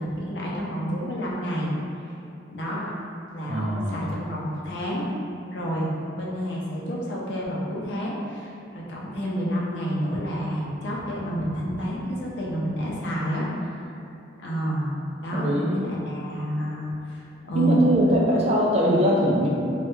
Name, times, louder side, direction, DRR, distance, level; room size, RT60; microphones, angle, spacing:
voice 1, 0.0-1.7 2.5-2.8 3.3-5.1 5.5-13.9 14.4-17.8, equal, 55° left, -5 dB, 0.5 m, -29 dB
voice 2, 3.4-4.0 15.3-15.8 17.5-19.5, equal, 30° right, -4 dB, 0.3 m, -21 dB
3.2 x 2.3 x 3.0 m, 2.6 s
head